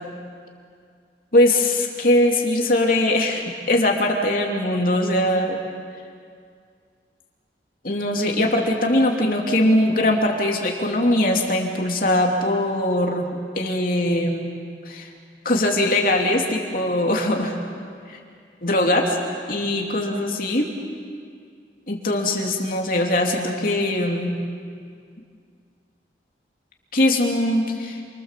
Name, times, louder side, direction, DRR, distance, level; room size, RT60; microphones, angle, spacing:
voice 1, 1.3-5.6 7.8-13.3 13.6-14.5 14.8-15.1 15.4-17.6 18.1-18.2 18.6-19.2 19.5-20.7 21.9-24.3 26.9-28.0, left 1 dB, 50° left, 0 dB, 2.9 m, -21 dB
28.5 x 24.0 x 7.6 m, 2.2 s
head